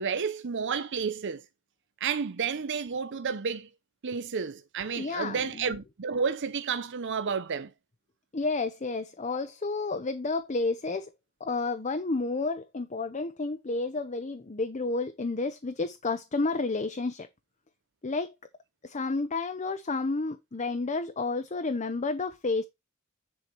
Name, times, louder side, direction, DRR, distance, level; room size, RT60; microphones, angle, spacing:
voice 1, 0.0-1.4 2.0-3.7 4.0-7.7, right 6 dB, 55° right, 0.6 m, -31 dB
voice 2, 5.0-5.8 8.3-11.1 11.4-17.3 18.0-18.3 18.8-22.6, left 3 dB, 35° left, 0.7 m, -31 dB
9.9 x 4.5 x 4.6 m
head